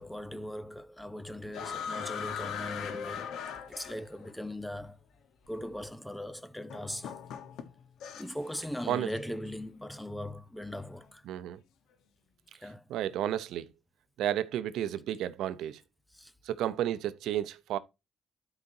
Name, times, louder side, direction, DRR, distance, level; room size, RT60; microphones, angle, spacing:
voice 1, 0.0-3.3 3.7-5.0 5.5-7.2 8.2-11.2 12.6-12.8 16.1-16.3, left 1 dB, 5° left, 0.6 m, -39 dB
sound 1, 1.5-4.3 5.4-5.5 6.7-8.5 8.8-9.2, left 7 dB, 75° left, 1.1 m, -39 dB
voice 2, 11.3-11.6 12.9-13.7 14.2-15.8 16.4-17.8, right 11 dB, 80° right, 0.7 m, -32 dB
12.5 x 4.9 x 2.7 m
cardioid pair, 130°, 0 cm